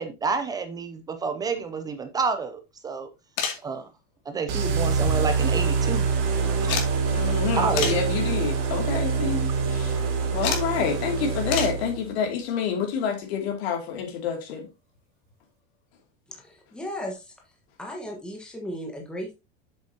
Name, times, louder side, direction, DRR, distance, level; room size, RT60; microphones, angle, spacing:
voice 1, 0.0-3.1 3.6-3.9 4.3-6.1 6.6-6.8 7.6-8.0, right 4 dB, 10° right, 0.4 m, -29 dB
sound 1, 3.4-3.7 4.9-5.6 5.8-5.9 6.7-6.9 7.8-8.1 8.8-9.0 10.4-10.7 11.5-11.8 13.5-13.6 14.9-15.0 15.2-15.3, left 6 dB, 65° left, 2.6 m, -29 dB
sound 2, 4.5-12.1, right 5 dB, 65° right, 3.4 m, -25 dB
voice 2, 7.1-10.0 10.3-14.7, left 7 dB, 80° left, 2.7 m, -28 dB
voice 3, 16.3-17.3 17.8-19.3, equal, 5° left, 1.4 m, -36 dB
7.6 x 7.3 x 2.8 m
supercardioid pair, 180°, 31 cm